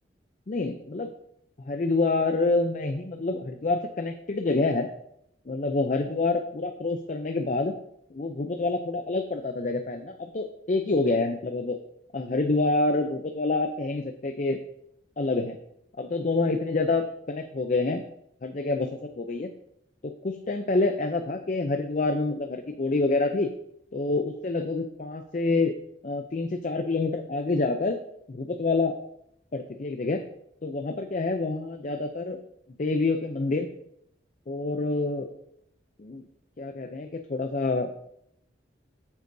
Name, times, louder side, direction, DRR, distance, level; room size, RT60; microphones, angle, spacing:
voice 1, 0.5-1.1 1.6-4.9 5.5-7.7 8.1-11.8 12.1-14.6 15.2-15.6 16.0-18.0 18.4-19.5 20.0-23.5 23.9-25.7 26.0-28.0 28.3-28.9 29.5-30.2 30.6-32.4 32.8-33.7 34.5-35.3 36.0-36.2 36.6-37.9, left 3 dB, 40° left, 6 dB, 0.5 m, -27 dB
8.2 x 8.1 x 2.7 m, 0.76 s
head